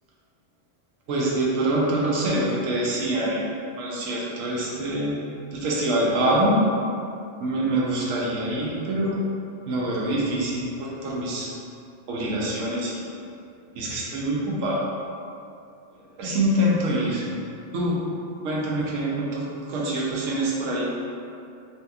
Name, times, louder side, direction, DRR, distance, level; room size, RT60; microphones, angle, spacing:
voice 1, 1.1-3.4 3.8-5.1 5.4-6.7 7.4-9.2 9.7-11.5 12.1-13.0 13.7-14.9 16.1-17.3 17.7-18.0 18.4-21.0, right 1 dB, 85° right, -4 dB, 1.0 m, -25 dB
2.8 x 2.7 x 2.3 m, 2.5 s
omnidirectional pair, 1.3 m